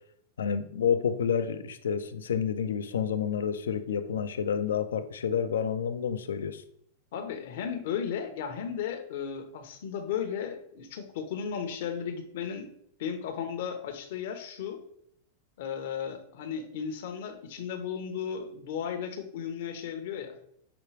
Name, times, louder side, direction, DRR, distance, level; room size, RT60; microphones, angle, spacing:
voice 1, 0.4-6.6, left 7 dB, 85° left, 0.4 m, -29 dB
voice 2, 7.1-12.7 13.0-14.8 15.6-20.4, left 7 dB, 70° left, 0.8 m, -35 dB
5.9 x 2.3 x 3.3 m
hypercardioid pair, 115°, 0 cm